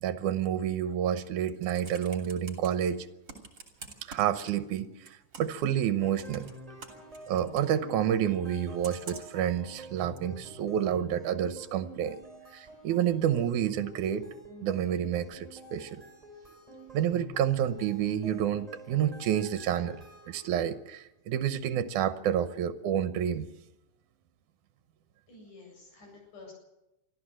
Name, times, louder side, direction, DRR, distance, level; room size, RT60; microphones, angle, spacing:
voice 1, 0.0-3.1 4.1-4.9 5.4-6.5 7.3-12.2 12.5-14.3 14.6-16.0 16.9-20.0 20.3-23.5, right 10 dB, 80° right, 11 dB, 2.3 m, -29 dB
Computer keyboard, 1.4-2.7 3.3-4.8 5.0-5.6 6.2-7.7 8.8-9.4 10.2-10.3, right 4 dB, 40° right, 3.5 m, -46 dB
sound 1, 6.0-20.7, right 1 dB, 10° right, 5.6 m, -48 dB
voice 2, 25.3-26.5, left 3 dB, 75° left, 0 dB, 9.4 m, -51 dB
24.5 x 14.0 x 7.6 m, 0.92 s
omnidirectional pair, 3.6 m